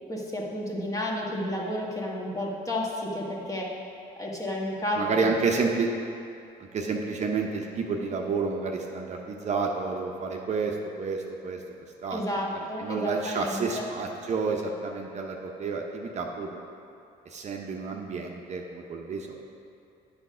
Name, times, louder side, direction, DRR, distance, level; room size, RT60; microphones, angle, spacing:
voice 1, 0.1-3.7 4.2-5.1 12.1-13.9, left 1 dB, 20° left, -2 dB, 1.4 m, -31 dB
voice 2, 4.9-5.9 6.7-11.6 12.0-12.2 12.8-16.6 17.3-19.3, right 4 dB, 45° right, 1 dB, 0.8 m, -30 dB
8.6 x 5.2 x 5.6 m, 2.6 s
cardioid pair, 110°, 17 cm